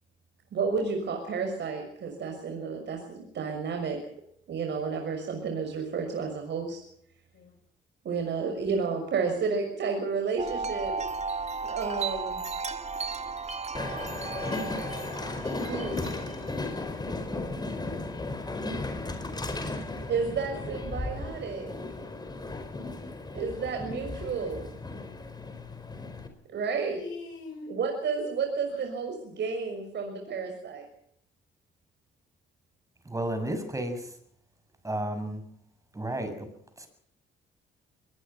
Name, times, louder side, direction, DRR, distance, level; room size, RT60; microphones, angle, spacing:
voice 1, 0.5-4.0 4.5-6.8 8.0-10.9 11.6-12.4 15.7-16.0 20.1-21.7 23.3-24.7 26.5-27.0 27.7-30.9, right 5 dB, 60° right, 3 dB, 6.3 m, -31 dB
Wind chime, 10.4-16.9, right 4 dB, 35° right, 1.7 m, -35 dB
voice 2, 10.6-11.0 15.9-16.4 26.9-27.7 28.7-28.8, left 4 dB, 70° left, 1 dB, 5.8 m, -43 dB
Train, 13.7-26.3, left 2 dB, 20° left, 5.1 m, -35 dB
voice 3, 33.0-34.1 34.8-35.4 35.9-36.5 36.8-36.9, right 1 dB, 15° right, 8 dB, 7.0 m, -32 dB
23.0 x 20.5 x 5.8 m, 0.67 s
cardioid pair, 90°, 20 cm